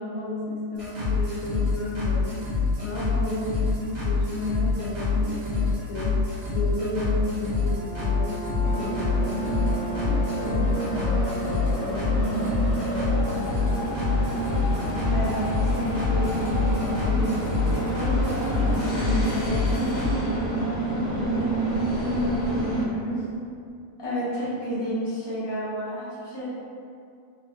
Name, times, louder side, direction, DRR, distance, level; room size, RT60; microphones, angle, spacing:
voice 1, 0.0-2.5 2.8-6.3 6.5-9.7 10.0-12.3 12.8-15.0 15.7-17.4 18.0-23.3, left 1 dB, 85° left, -4 dB, 1.1 m, -33 dB
sound 1, 0.8-20.1, left 4 dB, 90° right, 1.4 m, -26 dB
Brass instrument, 7.5-11.9, left 2 dB, 55° right, 1.3 m, -37 dB
sound 2, 8.6-22.8, right 2 dB, 60° left, 1.0 m, -28 dB
voice 2, 12.1-12.5 15.1-15.7 24.0-26.4, equal, 25° left, -10 dB, 0.7 m, -30 dB
3.2 x 2.2 x 2.7 m, 2.4 s
omnidirectional pair, 1.4 m